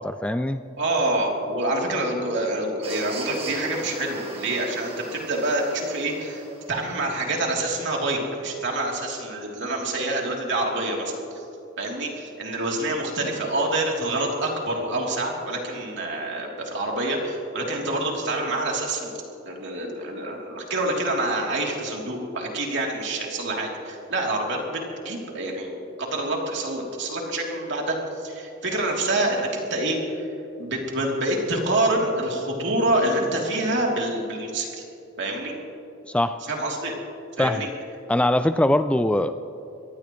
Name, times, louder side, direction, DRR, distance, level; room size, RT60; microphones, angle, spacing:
voice 1, 0.0-0.6 36.1-36.4 37.4-37.7 38.1-39.3, left 1 dB, 5° left, 10 dB, 0.3 m, -22 dB
voice 2, 0.8-11.4 11.8-19.1 19.4-30.0 30.6-34.7 35.2-35.5 36.5-36.9 37.4-37.7, right 2 dB, 60° right, -1 dB, 3.2 m, -27 dB
sound 1, 2.8-7.0, right 3 dB, 30° right, 2.0 m, -39 dB
24.0 x 18.0 x 3.1 m, 2.8 s
head